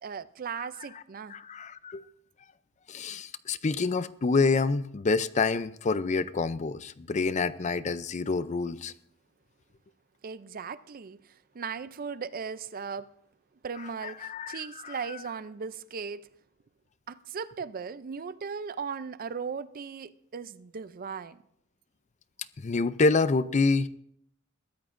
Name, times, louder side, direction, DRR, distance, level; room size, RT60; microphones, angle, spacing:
voice 1, 0.0-1.4 10.2-11.2 11.5-13.1 13.6-16.3 17.1-21.4, right 6 dB, 45° right, 0.5 m, -37 dB
voice 2, 1.3-2.0 2.9-8.9 14.0-15.2 22.6-23.9, left 4 dB, 35° left, 0.5 m, -27 dB
21.5 x 14.0 x 2.6 m
head